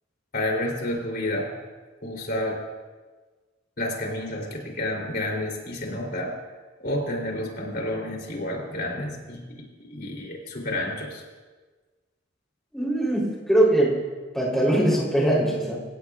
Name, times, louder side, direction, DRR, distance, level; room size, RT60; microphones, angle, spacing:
voice 1, 0.3-1.5 2.0-2.6 3.8-6.3 6.8-9.4 9.9-11.2, left 1 dB, 55° left, -1 dB, 3.4 m, -30 dB
voice 2, 12.7-14.0 14.3-15.8, right 1 dB, ahead, -5 dB, 3.5 m, -21 dB
26.0 x 16.0 x 2.4 m, 1.4 s
head